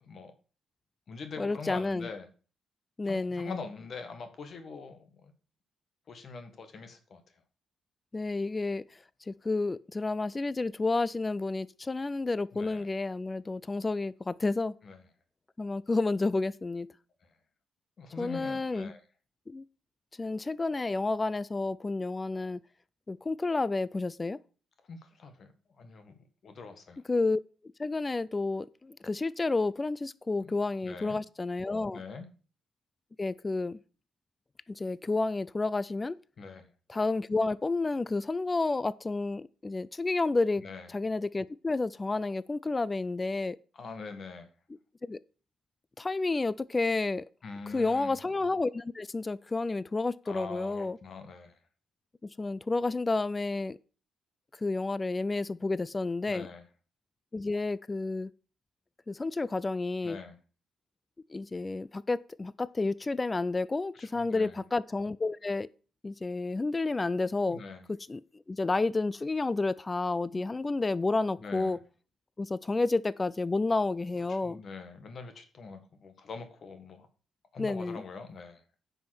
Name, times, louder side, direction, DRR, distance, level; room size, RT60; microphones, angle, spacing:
voice 1, 0.0-0.3 1.1-2.3 3.0-5.3 6.1-7.2 12.5-12.8 14.8-15.0 18.0-19.0 24.9-25.5 25.8-26.1 26.4-27.0 30.4-30.5 30.8-31.2 31.9-32.3 36.4-36.7 40.6-40.9 43.7-44.5 47.4-48.2 50.3-51.6 56.3-56.6 60.0-60.4 63.9-64.6 67.5-67.9 71.4-71.8 74.3-77.1 77.5-78.6, left 4 dB, 50° left, 1.7 m, -43 dB
voice 2, 1.4-2.1 3.0-3.6 8.1-8.8 9.3-14.7 15.6-16.9 18.2-18.9 19.5-19.6 20.2-22.6 23.1-24.4 27.1-27.4 27.8-32.0 33.2-33.8 34.7-36.2 36.9-40.6 40.9-43.6 45.0-45.2 46.0-47.3 47.7-51.0 52.4-53.8 54.6-56.5 57.3-58.3 59.1-60.2 61.3-65.7 66.0-67.6 67.9-68.2 68.5-71.8 72.4-74.6 77.6-78.0, left 3 dB, 25° left, 0.4 m, -30 dB
9.5 x 5.7 x 6.1 m
cardioid pair, 90°, 0 cm